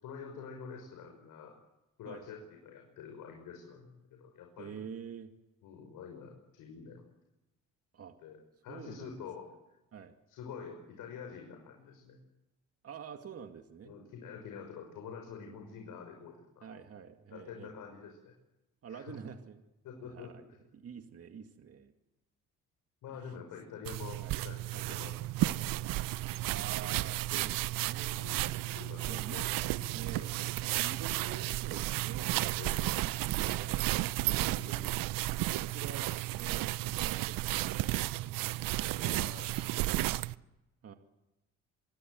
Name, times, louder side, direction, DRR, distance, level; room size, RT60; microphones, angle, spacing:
voice 1, 0.0-1.5 2.0-4.8 5.6-7.0 8.2-8.4 8.6-9.5 10.3-12.2 13.9-16.8 17.3-18.3 18.9-19.1 19.8-20.3 23.0-25.1 25.4-25.9 26.9-27.0 28.1-29.5 29.7-30.3 32.6-32.9 34.2-34.9 39.0-40.2, left 6 dB, 75° left, 2 dB, 5.8 m, -47 dB
voice 2, 4.6-5.3 7.9-8.2 8.7-9.2 9.9-10.1 12.8-14.0 16.6-17.7 18.8-19.6 20.0-20.5 20.7-21.9 23.1-23.4 24.2-24.4 24.7-24.9 26.4-28.6 29.1-29.4 29.9-30.3 30.7-32.5 33.0-34.0 34.4-34.9 35.6-39.4 40.8-40.9, right 7 dB, 45° right, 6 dB, 2.3 m, -47 dB
sound 1, 23.9-40.3, right 17 dB, 80° right, 0.8 m, -33 dB
26.5 x 20.0 x 7.9 m, 0.98 s
cardioid pair, 90°, 33 cm